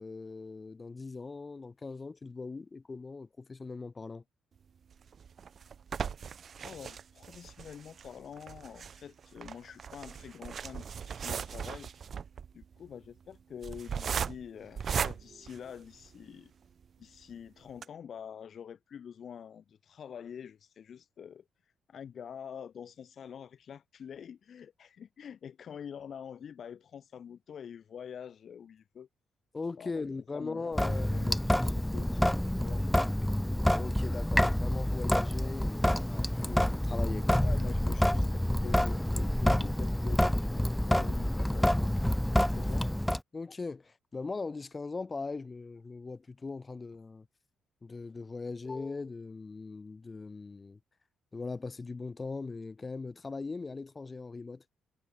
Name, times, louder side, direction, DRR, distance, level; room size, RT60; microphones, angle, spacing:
voice 1, 0.0-4.2 29.5-31.1 33.7-37.4 43.3-47.3 47.8-50.8 51.3-54.6, left 4 dB, 30° left, 2.7 m, -40 dB
sound 1, 4.9-16.3 16.8-16.9 17.2-17.3 17.7-17.8, right 7 dB, 50° right, 2.6 m, -38 dB
voice 2, 6.6-11.9 12.5-16.5 17.0-21.4 21.9-29.1 29.8-29.9 30.3-32.8 37.4-41.9 42.5-42.9, left 8 dB, 55° left, 1.8 m, -46 dB
Sink (filling or washing) / Drip, 30.7-43.2, left 1 dB, 5° left, 0.5 m, -28 dB
cardioid pair, 90°, 0 cm